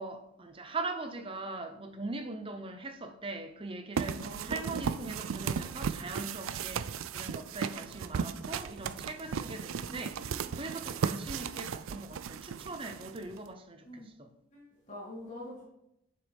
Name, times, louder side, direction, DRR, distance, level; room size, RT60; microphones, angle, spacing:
voice 1, 0.0-14.3, right 3 dB, 25° right, 0.7 m, -41 dB
sound 1, 4.0-13.5, right 6 dB, 80° right, 0.4 m, -36 dB
voice 2, 4.2-5.2 9.7-10.6 13.8-14.1 14.5-15.6, equal, 35° left, 3.3 m, -46 dB
9.4 x 7.4 x 3.5 m
head